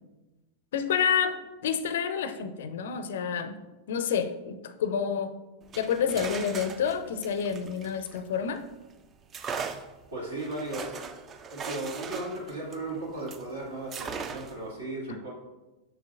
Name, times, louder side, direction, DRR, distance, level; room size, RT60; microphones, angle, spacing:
voice 1, 0.7-3.6 3.9-5.3 5.7-8.6, left 7 dB, 60° left, 11 dB, 0.4 m, -29 dB
sound 1, 5.6-8.7 9.3-13.5 13.9-14.7, right 6 dB, 25° right, 0.4 m, -39 dB
voice 2, 10.1-11.1 11.5-15.3, right 2 dB, 70° right, -4 dB, 2.0 m, -36 dB
6.6 x 6.4 x 2.4 m, 1.1 s
figure-of-eight pair, 90°, 0 cm